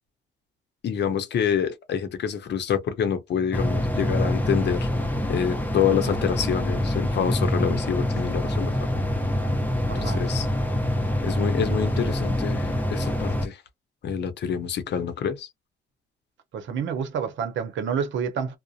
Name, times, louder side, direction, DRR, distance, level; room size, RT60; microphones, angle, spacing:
voice 1, 0.8-4.9 5.3-8.7 9.9-10.5 11.2-13.6 14.0-15.5, left 7 dB, 60° left, 0.7 m, -27 dB
sound 1, 3.5-13.5, left 1 dB, 10° left, 0.7 m, -25 dB
voice 2, 9.9-10.2 16.5-18.6, right 7 dB, 70° right, 0.7 m, -28 dB
2.4 x 2.0 x 2.6 m
cardioid pair, 90°, 20 cm